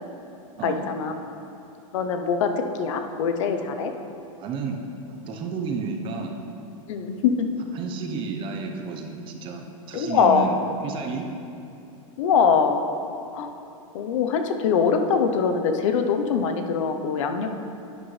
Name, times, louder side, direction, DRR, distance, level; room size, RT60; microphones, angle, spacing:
voice 1, 0.6-1.1 1.9-3.9 6.9-7.5 9.9-10.5 12.2-12.8 13.3-13.5 13.9-17.5, left 6 dB, 65° left, 6 dB, 0.8 m, -23 dB
voice 2, 4.4-4.8 5.1-6.4 7.7-10.6 10.8-11.3, right 5 dB, 30° right, 3 dB, 0.8 m, -31 dB
11.0 x 8.8 x 3.3 m, 2.7 s
supercardioid pair, 155°, 18 cm